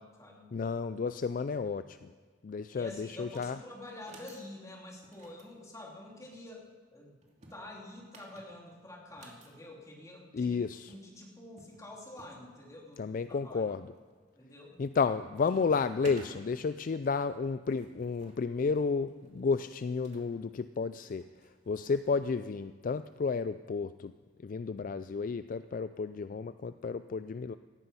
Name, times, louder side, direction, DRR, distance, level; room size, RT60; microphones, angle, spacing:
voice 1, 0.0-0.8 2.7-6.6 6.9-7.2 7.5-10.6 10.9-13.6 14.4-14.8, left 1 dB, 20° left, -2 dB, 3.2 m, -48 dB
voice 2, 0.5-2.1 2.4-3.6 10.3-10.9 13.0-13.9 14.8-21.3 21.7-24.1 24.4-27.5, left 5 dB, 50° left, 12 dB, 0.4 m, -32 dB
sound 1, 3.2-3.6 3.9-4.4 5.0-6.4 7.2-9.5 10.6-10.7 10.9-11.0 11.6-12.4 12.9-13.4 14.0-14.4 14.7-15.1 15.4-16.3 17.3-20.3 21.2-22.3, right 2 dB, 40° right, 2.6 m, -54 dB
18.0 x 14.0 x 5.5 m, 1.5 s
head